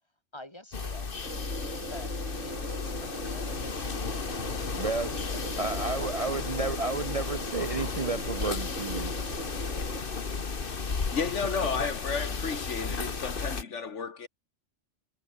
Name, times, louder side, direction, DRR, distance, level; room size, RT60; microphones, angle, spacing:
voice 1, 0.3-1.1 1.8-3.9 4.7-6.3, left 1 dB, 20° left, 4.1 m, -46 dB
sound 1, 0.7-13.6, left 4 dB, 45° left, 1.7 m, -34 dB
sound 2, 1.2-10.0, right 2 dB, 80° right, 5.0 m, -41 dB
voice 2, 4.8-5.1 5.6-9.1, right 3 dB, 30° right, 0.8 m, -31 dB
voice 3, 11.1-14.3, left 5 dB, 70° left, 1.8 m, -32 dB
omnidirectional pair, 1.3 m